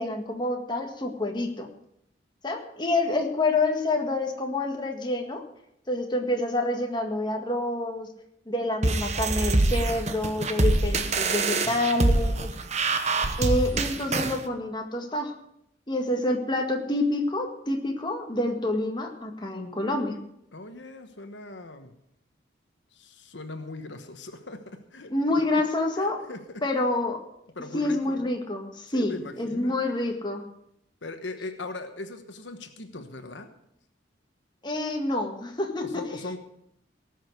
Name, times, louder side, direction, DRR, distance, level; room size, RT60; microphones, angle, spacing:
voice 1, 0.0-1.7 2.4-5.4 5.9-8.1 8.5-12.5 13.4-15.3 15.9-20.2 25.1-26.2 26.6-27.2 27.7-30.4 34.6-36.0, left 2 dB, 25° left, 3 dB, 1.8 m, -27 dB
sound 1, 8.8-14.4, right 2 dB, 40° right, 1.1 m, -25 dB
voice 2, 20.5-21.9 22.9-25.4 26.0-26.4 27.5-28.3 28.9-29.9 31.0-33.5 35.8-36.4, left 2 dB, 75° left, 7 dB, 1.2 m, -39 dB
18.0 x 6.5 x 8.1 m, 0.77 s
head